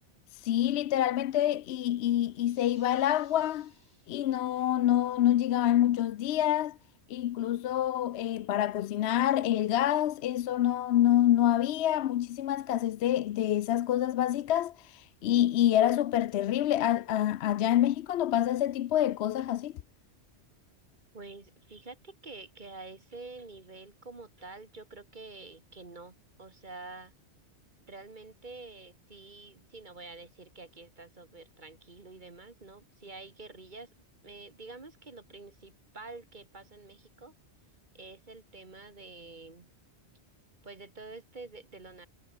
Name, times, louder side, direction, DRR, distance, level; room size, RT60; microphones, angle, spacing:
voice 1, 0.4-3.7 4.1-6.8 7.1-19.7, left 12 dB, 70° left, 0.8 m, -27 dB
sound 1, 2.3-4.8, right 1 dB, 60° right, 7.0 m, -64 dB
voice 2, 21.1-27.1 27.9-33.9 34.2-37.3 37.9-39.7 40.6-42.1, right 3 dB, 45° right, 2.2 m, -47 dB
omnidirectional pair, 1.2 m